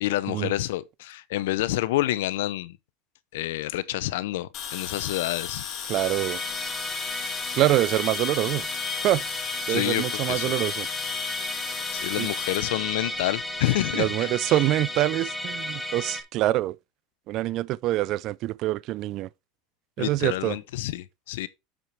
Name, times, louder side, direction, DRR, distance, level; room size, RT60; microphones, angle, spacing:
voice 1, 0.0-2.8 3.3-5.8 9.7-10.5 11.9-14.6 20.0-21.5, left 16 dB, 85° left, 0.6 m, -28 dB
sound 1, 4.5-13.8, left 9 dB, 50° left, 2.2 m, -35 dB
Musical instrument, 5.9-16.2, left 1 dB, 5° left, 1.3 m, -33 dB
voice 2, 5.9-6.4 7.5-8.7 9.0-9.2 9.7-10.9 12.2-12.3 13.9-16.8 17.3-19.3 20.0-20.6, right 16 dB, 55° right, 0.3 m, -25 dB
7.8 x 4.7 x 4.3 m
supercardioid pair, 110°, 0 cm